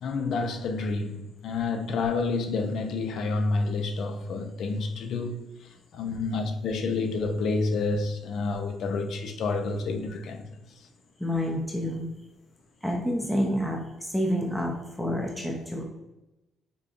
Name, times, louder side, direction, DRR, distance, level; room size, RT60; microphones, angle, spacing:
voice 1, 0.0-10.9, left 3 dB, 70° left, 0.5 m, -29 dB
voice 2, 11.2-12.1 12.8-15.8, equal, ahead, 0.5 m, -28 dB
5.0 x 2.2 x 2.5 m
cardioid pair, 90°, 0 cm